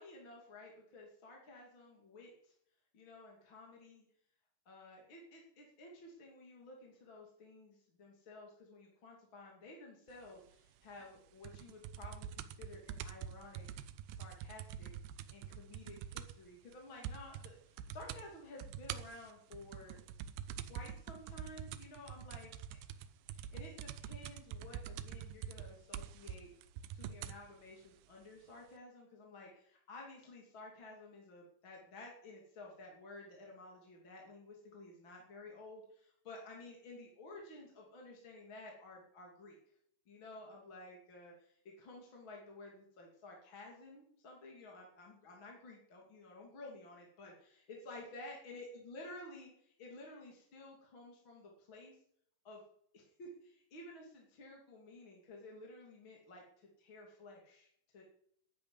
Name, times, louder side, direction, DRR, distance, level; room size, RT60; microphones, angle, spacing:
voice 1, 0.0-2.5 2.9-4.1 4.6-13.7 14.1-20.0 20.6-22.8 23.3-26.5 26.9-39.6 40.1-49.5 49.8-52.0 52.4-52.6 52.9-58.0, left 2 dB, 35° left, -1 dB, 3.1 m, -53 dB
sound 1, 11.4-16.5 16.7-16.8 17.0-17.5 17.8-18.2 18.6-27.4 28.2-28.3, right 9 dB, 85° right, 2.7 m, -45 dB
10.5 x 10.5 x 9.8 m, 0.69 s
omnidirectional pair, 4.5 m